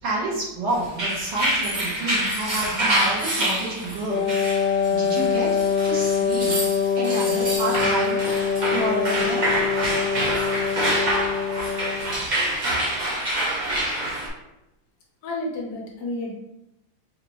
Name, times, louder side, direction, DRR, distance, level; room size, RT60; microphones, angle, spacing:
voice 1, 0.0-6.6 7.0-8.3 8.7-9.5, right 2 dB, 75° right, -6 dB, 2.0 m, -29 dB
sound 1, 0.8-14.3, right 1 dB, 45° right, 0.5 m, -26 dB
Wind instrument woodwind instrument, 4.1-12.2, left 7 dB, 85° left, 0.6 m, -24 dB
voice 2, 15.2-16.3, left 2 dB, 70° left, -1 dB, 1.4 m, -30 dB
4.7 x 2.5 x 3.0 m, 0.89 s
omnidirectional pair, 2.0 m